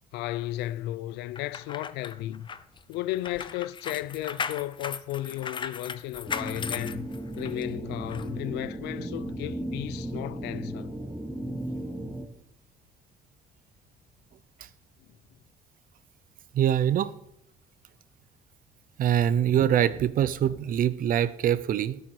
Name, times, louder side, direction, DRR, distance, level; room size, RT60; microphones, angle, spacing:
voice 1, 0.1-2.5 2.9-7.1 7.4-10.9, left 15 dB, 85° left, 0.4 m, -34 dB
sound 1, 1.4-7.6 8.1-8.3, left 6 dB, 30° left, 0.6 m, -37 dB
sound 2, 6.3-12.2, right 1 dB, 10° right, 1.4 m, -35 dB
voice 2, 16.5-17.1 19.0-22.0, right 10 dB, 55° right, 0.7 m, -24 dB
12.5 x 8.7 x 4.7 m
cardioid pair, 110°, 17 cm